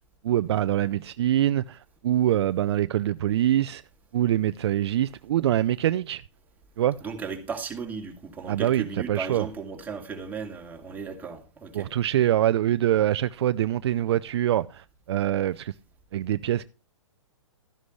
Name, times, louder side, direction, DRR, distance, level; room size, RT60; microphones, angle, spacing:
voice 1, 0.2-3.8 4.1-6.2 6.8-7.0 8.5-9.5 11.7-15.7 16.1-16.6, right 12 dB, 55° right, 0.5 m, -24 dB
voice 2, 7.0-11.9, right 5 dB, 10° right, 2.4 m, -36 dB
13.0 x 11.0 x 3.1 m
hypercardioid pair, 135°, 16 cm